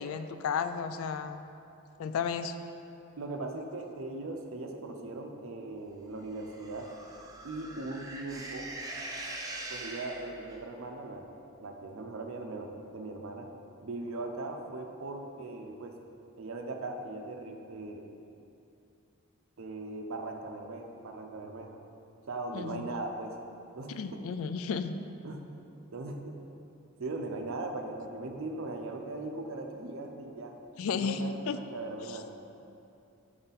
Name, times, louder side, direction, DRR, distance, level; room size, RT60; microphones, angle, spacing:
voice 1, 0.0-1.4 2.0-2.6 22.5-22.9 23.9-24.9 30.8-31.6 32.1-32.2, left 6 dB, 70° left, 10 dB, 0.3 m, -33 dB
voice 2, 3.2-6.9 7.4-8.7 9.7-11.3 11.6-13.5 13.8-16.0 16.4-18.1 19.6-21.8 22.3-23.3 23.7-24.2 25.2-25.4 25.9-26.3 27.0-30.6 30.9-31.4 31.7-32.3, right 2 dB, 65° right, 3 dB, 0.5 m, -39 dB
sound 1, 6.3-10.6, right 2 dB, 15° right, 0.4 m, -42 dB
7.6 x 3.9 x 4.1 m, 2.7 s
head